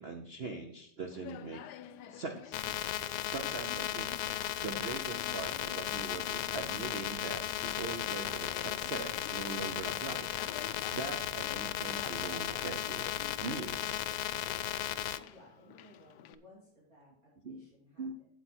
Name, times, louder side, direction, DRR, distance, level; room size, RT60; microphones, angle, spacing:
voice 1, 0.0-1.7 2.1-2.6 3.3-4.1 4.6-10.4 10.9-13.1 13.4-14.1 17.4-17.6 18.0-18.1, right 4 dB, 85° right, 4 dB, 0.5 m, -41 dB
Conversation, 1.1-16.3, left 10 dB, 70° left, 1.0 m, -50 dB
sound 1, 2.5-15.2, left 12 dB, 90° left, 1.4 m, -36 dB
voice 2, 15.1-18.3, left 1 dB, 45° right, -6 dB, 3.1 m, -60 dB
8.2 x 8.2 x 4.4 m, 0.69 s
omnidirectional pair, 2.2 m